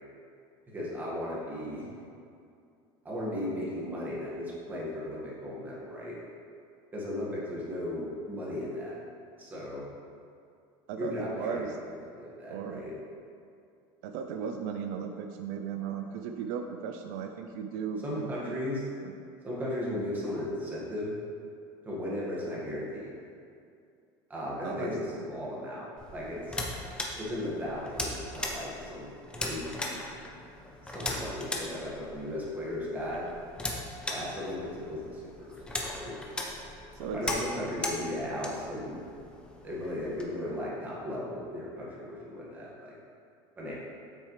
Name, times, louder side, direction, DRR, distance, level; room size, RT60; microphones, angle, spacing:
voice 1, 0.7-1.8 3.0-6.2 6.9-9.0 9.4-9.8 11.0-11.6 12.1-12.9 18.0-18.8 19.4-21.1 21.8-23.1 24.3-26.6 27.2-29.9 30.8-33.2 34.1-35.5 36.0-36.3 37.1-39.0 39.6-42.9 43.6-43.7, left 1 dB, 15° right, -6 dB, 1.7 m, -36 dB
voice 2, 10.9-11.8 12.5-12.8 14.0-18.6 19.0-19.1 24.6-25.0 36.9-37.4, right 7 dB, 75° right, 5 dB, 0.5 m, -36 dB
sound 1, 26.0-40.2, left 1 dB, 10° left, 0.7 m, -38 dB
8.3 x 6.4 x 3.2 m, 2.4 s
cardioid pair, 155°, 11 cm